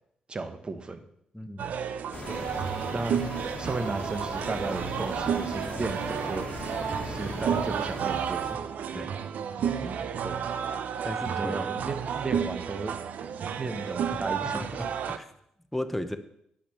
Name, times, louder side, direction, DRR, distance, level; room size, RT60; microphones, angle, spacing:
voice 1, 0.3-1.0 2.3-3.2 3.6-6.5 7.0-8.6 10.2-10.5 11.4-12.9 13.6-14.6, right 3 dB, 35° right, 9 dB, 1.1 m, -35 dB
voice 2, 1.3-1.7 7.2-7.4 8.9-9.1 9.8-10.1 11.0-11.7 14.5-15.3 15.7-16.2, left 1 dB, 5° left, 7 dB, 0.9 m, -36 dB
sound 1, 1.6-15.2, right 7 dB, 70° right, 0.6 m, -31 dB
sound 2, 2.1-8.5, left 3 dB, 35° left, 1.7 m, -39 dB
8.5 x 5.8 x 7.0 m, 0.74 s
cardioid pair, 70°, 3 cm